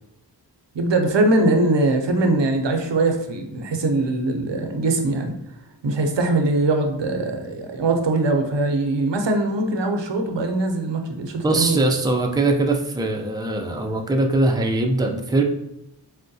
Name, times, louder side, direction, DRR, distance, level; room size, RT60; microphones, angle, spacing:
voice 1, 0.7-5.3 5.8-11.8, right 2 dB, 80° right, 4 dB, 0.6 m, -21 dB
voice 2, 11.4-15.4, right 2 dB, 10° right, 2 dB, 0.4 m, -21 dB
4.4 x 2.1 x 2.6 m, 0.85 s
wide cardioid pair, 45°, 42 cm